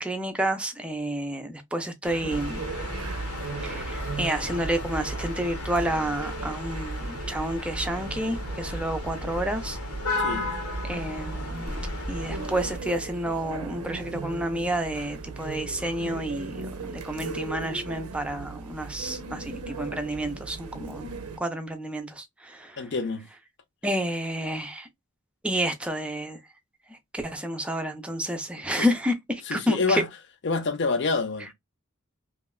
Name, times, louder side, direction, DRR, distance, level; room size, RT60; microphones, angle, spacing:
voice 1, 0.0-2.6 3.6-9.8 10.8-11.7 12.1-21.1 21.4-22.9 23.8-24.9 25.4-26.4 26.9-30.0, right 1 dB, 5° right, 0.4 m, -30 dB
sound 1, 2.0-21.4, right 4 dB, 80° right, 0.5 m, -38 dB
sound 2, 2.3-12.8, left 1 dB, 80° left, 1.1 m, -34 dB
voice 2, 10.2-10.5 22.8-23.3 28.8-28.9 29.5-30.1 30.4-31.5, left 4 dB, 50° left, 0.5 m, -27 dB
3.0 x 2.3 x 2.2 m
head